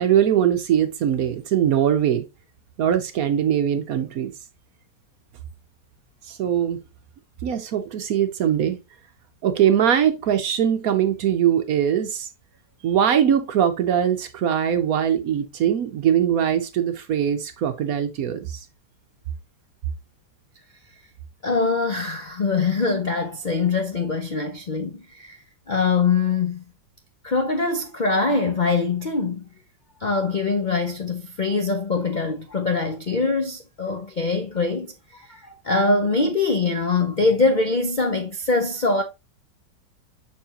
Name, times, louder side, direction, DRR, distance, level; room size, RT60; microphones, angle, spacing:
voice 1, 0.0-2.2 2.8-4.3 6.3-6.8 7.4-8.8 9.4-12.3 12.8-18.7, right 9 dB, 65° right, 0.9 m, -21 dB
voice 2, 21.4-25.4 25.7-26.6 27.2-29.5 30.0-39.0, left 3 dB, 75° left, 0.4 m, -23 dB
6.8 x 5.5 x 2.9 m
omnidirectional pair, 1.9 m